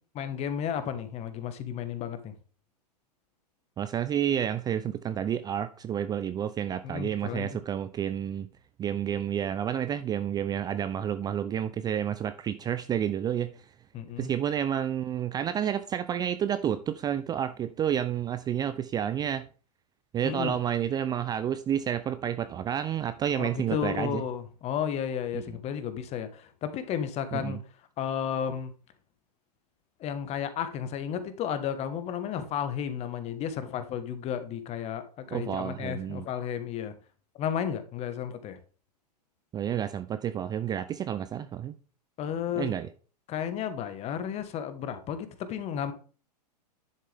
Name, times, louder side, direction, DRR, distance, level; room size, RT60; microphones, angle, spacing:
voice 1, 0.1-2.3 6.8-7.6 13.9-14.3 20.2-20.6 23.3-27.6 28.0-28.7 30.0-36.9 37.3-38.6 42.2-42.7 43.3-45.9, left 8 dB, 30° left, 1.3 m, -33 dB
voice 2, 3.8-8.5 8.8-13.6 14.2-19.5 20.1-24.2 25.3-25.4 27.3-27.6 35.3-36.2 39.5-41.8 42.6-42.9, right 9 dB, 20° right, 0.4 m, -30 dB
10.5 x 7.4 x 3.5 m
hypercardioid pair, 110°, 21 cm